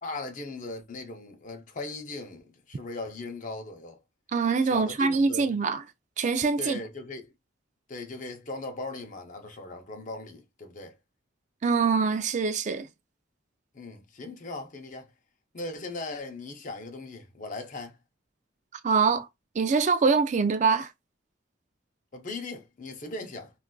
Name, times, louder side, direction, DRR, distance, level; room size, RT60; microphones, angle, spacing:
voice 1, 0.0-4.0 4.6-5.6 6.6-7.3 7.9-11.0 13.7-15.1 15.5-18.0 22.1-23.5, left 2 dB, 40° left, 0.6 m, -38 dB
voice 2, 4.3-5.8 6.2-6.8 11.6-12.9 18.8-19.3 19.6-20.9, right 4 dB, 35° right, 0.3 m, -24 dB
3.7 x 2.4 x 2.3 m
head